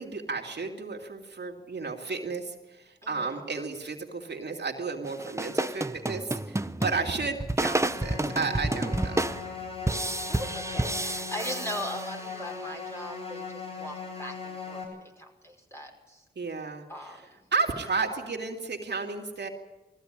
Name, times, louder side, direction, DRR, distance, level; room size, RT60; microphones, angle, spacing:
voice 1, 0.0-9.4 16.4-19.5, right 4 dB, 75° right, 2 dB, 2.4 m, -33 dB
voice 2, 3.0-3.4 6.8-7.1 10.3-16.2 16.9-17.4, equal, 15° left, 1 dB, 5.3 m, -40 dB
sound 1, 5.0-12.5, right 2 dB, 15° right, 0.8 m, -30 dB
sound 2, 7.8-14.8, left 4 dB, 35° left, 7.9 m, -39 dB
19.0 x 15.0 x 10.0 m, 1.1 s
wide cardioid pair, 60°, 18 cm